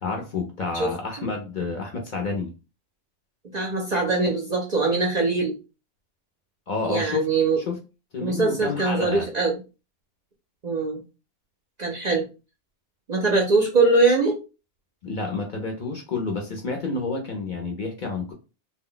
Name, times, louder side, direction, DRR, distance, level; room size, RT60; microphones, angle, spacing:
voice 1, 0.0-2.5 6.7-7.3 7.6-7.8 8.1-9.3 15.0-18.3, left 4 dB, 55° left, 0.6 m, -29 dB
voice 2, 3.5-5.5 6.8-7.6 8.2-9.6 10.6-11.0 11.8-12.3 13.1-14.4, right 3 dB, 50° right, 0.5 m, -22 dB
2.2 x 2.1 x 3.7 m
omnidirectional pair, 1.2 m